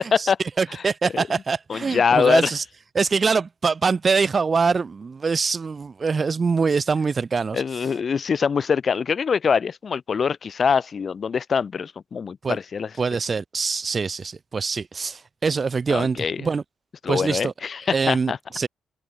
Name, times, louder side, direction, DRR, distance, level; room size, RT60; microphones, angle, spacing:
voice 1, 0.6-2.6 2.9-7.6 12.4-12.6 13.0-16.6 17.1-17.5 17.9-18.7, right 5 dB, 35° right, 5.8 m, -24 dB
voice 2, 1.7-2.5 7.5-12.9 15.9-16.4 17.0-18.4, left 6 dB, 45° left, 5.7 m, -23 dB
open air
cardioid pair, 90°, 0 cm